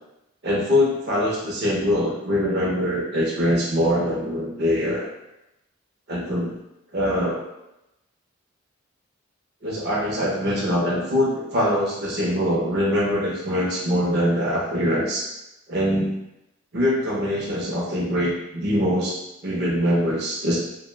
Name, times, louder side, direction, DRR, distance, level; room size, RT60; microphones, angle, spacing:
voice 1, 0.4-5.1 6.1-6.5 6.9-7.4 9.6-15.3 15.7-16.1 16.7-19.2 19.4-20.6, equal, 50° right, -3 dB, 0.5 m, -23 dB
2.5 x 2.1 x 3.1 m, 0.90 s
head